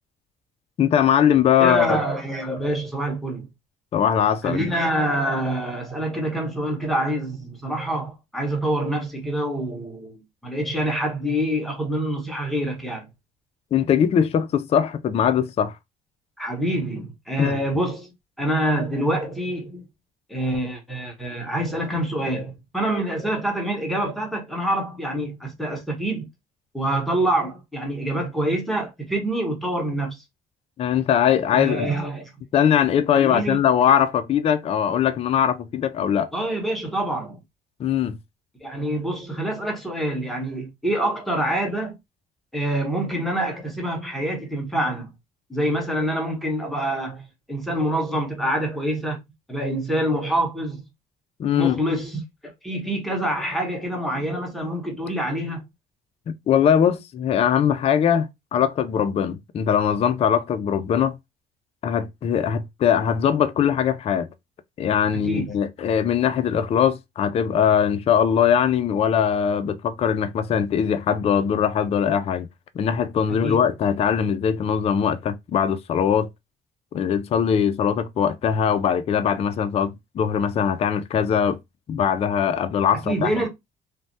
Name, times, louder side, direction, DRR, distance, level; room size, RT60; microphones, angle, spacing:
voice 1, 0.8-2.0 3.9-4.7 13.7-15.7 17.4-17.6 30.8-31.9 32.5-36.3 37.8-38.2 51.4-51.8 56.3-61.2 61.8-64.3 64.8-72.5 72.8-76.3 76.9-81.6 81.9-83.5, left 8 dB, 35° left, 0.3 m, -21 dB
voice 2, 1.6-3.5 4.4-13.1 16.4-19.8 20.3-26.3 26.7-30.2 31.5-32.3 33.1-33.6 36.3-37.4 38.6-42.0 42.5-45.1 45.5-49.2 49.5-50.8 51.5-55.6 65.1-65.5 73.3-73.6 83.0-83.5, right 1 dB, ahead, 1.1 m, -26 dB
3.2 x 2.1 x 2.6 m
cardioid pair, 110°, 17 cm